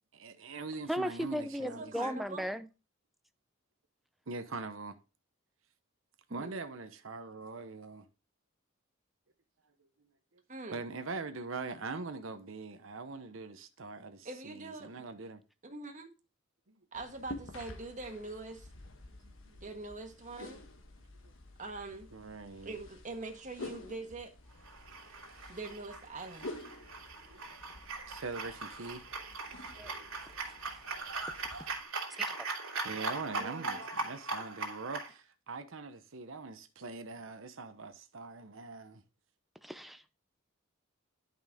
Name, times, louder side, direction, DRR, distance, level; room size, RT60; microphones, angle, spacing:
voice 1, 0.1-2.0 4.3-5.0 6.3-8.1 9.6-10.4 10.7-15.4 16.7-16.9 19.1-19.6 21.2-21.3 22.1-22.8 26.8-27.0 27.3-27.6 28.1-29.0 30.0-30.2 30.6-30.7 32.0-32.2 32.8-39.0, right 3 dB, 70° right, 1.0 m, -43 dB
voice 2, 0.9-2.7 29.8-29.9 39.6-40.1, equal, ahead, 0.5 m, -36 dB
voice 3, 1.6-2.4 6.3-6.5 10.5-10.8 14.2-14.9 15.6-16.1 16.9-18.7 19.6-20.6 21.6-22.1 22.6-24.3 25.5-26.5 33.3-33.8, right 3 dB, 40° right, 1.5 m, -43 dB
sound 1, 16.9-31.8, left 2 dB, 70° left, 1.3 m, -50 dB
sound 2, 24.6-35.1, right 3 dB, 85° right, 2.6 m, -40 dB
10.5 x 5.5 x 3.6 m
head